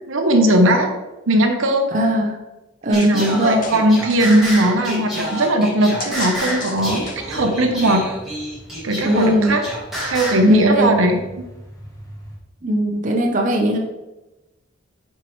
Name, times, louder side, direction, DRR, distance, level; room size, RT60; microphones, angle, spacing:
voice 1, 0.1-0.9 1.3-1.9 2.9-7.0 7.3-8.1 8.8-9.6 10.0-11.2, right 1 dB, 80° right, 5 dB, 0.8 m, -18 dB
voice 2, 1.9-2.4 2.8-3.7 9.0-9.6 10.5-10.9 12.6-13.8, equal, 40° right, 1 dB, 0.6 m, -19 dB
Singing, 2.9-10.5, equal, ahead, 2.0 m, -29 dB
sound 1, 3.0-3.3 3.6-4.7 6.0-7.4, left 4 dB, 40° left, 0.6 m, -33 dB
Truck, 6.7-12.4, equal, 20° left, 1.0 m, -41 dB
7.0 x 4.6 x 3.1 m, 1.0 s
head